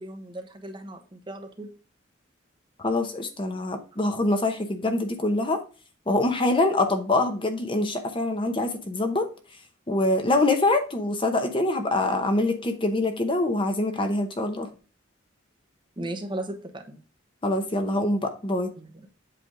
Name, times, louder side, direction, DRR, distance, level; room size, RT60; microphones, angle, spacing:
voice 1, 0.0-1.7 16.0-17.0 18.8-19.1, right 1 dB, 25° right, 0.9 m, -36 dB
voice 2, 2.8-5.6 6.1-9.3 9.9-14.7 17.4-18.7, left 2 dB, 25° left, 0.8 m, -24 dB
7.8 x 3.4 x 4.9 m
head